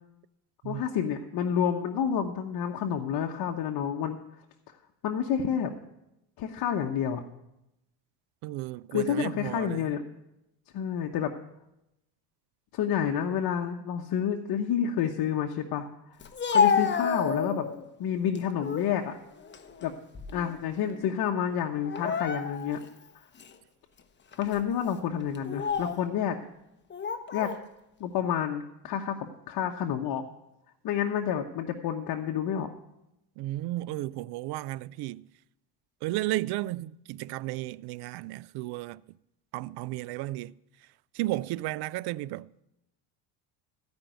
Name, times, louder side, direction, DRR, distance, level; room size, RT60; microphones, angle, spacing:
voice 1, 0.6-4.2 5.0-5.7 6.4-7.2 8.9-10.0 10.7-11.3 12.7-15.9 16.5-17.7 18.0-19.2 19.8-19.9 20.3-22.8 24.4-26.4 27.3-27.5 28.0-30.2 30.8-32.7, left 8 dB, 55° left, 1.0 m, -29 dB
voice 2, 8.4-9.9 33.4-35.2 36.0-39.0 39.5-40.5 41.1-42.6, right 17 dB, 60° right, 0.5 m, -33 dB
Speech, 16.2-17.8 18.3-18.9 19.4-20.6 20.8-21.1 21.8-22.8 23.4-23.5 24.3-24.6 25.3-26.0 26.9-27.6, left 6 dB, 25° left, 1.0 m, -29 dB
14.5 x 5.3 x 9.0 m
supercardioid pair, 95°, 43 cm